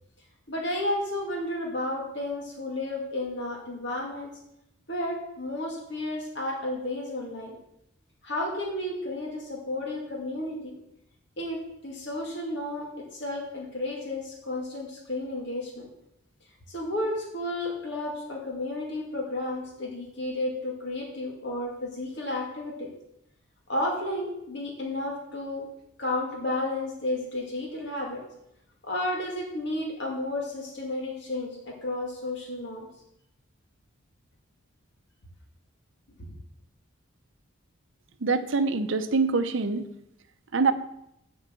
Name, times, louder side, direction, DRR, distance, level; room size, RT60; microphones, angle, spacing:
voice 1, 0.5-4.3 4.9-7.6 8.2-10.7 11.4-15.9 16.7-22.9 23.7-25.7 26.0-28.2 28.8-32.9 36.2-36.3, left 1 dB, 55° left, -1 dB, 2.2 m, -32 dB
voice 2, 38.2-39.9 40.5-40.7, right 4 dB, 65° right, 8 dB, 0.7 m, -24 dB
7.9 x 5.4 x 7.5 m, 0.80 s
head